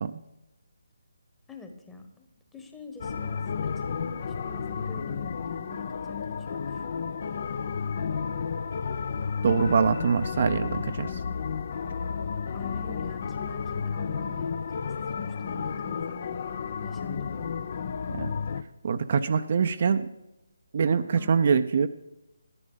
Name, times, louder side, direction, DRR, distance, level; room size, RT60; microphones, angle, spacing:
voice 1, 1.5-2.2 2.5-6.8 12.5-14.8 15.1-17.5 21.2-21.5, left 3 dB, 10° left, 4 dB, 1.1 m, -44 dB
sound 1, 3.0-18.6, left 6 dB, 45° left, 0.5 m, -32 dB
voice 2, 9.4-11.2 18.1-18.3 18.8-20.1 20.7-21.9, right 6 dB, 45° right, 9 dB, 0.5 m, -24 dB
11.0 x 11.0 x 3.8 m, 0.92 s
figure-of-eight pair, 150°, 0 cm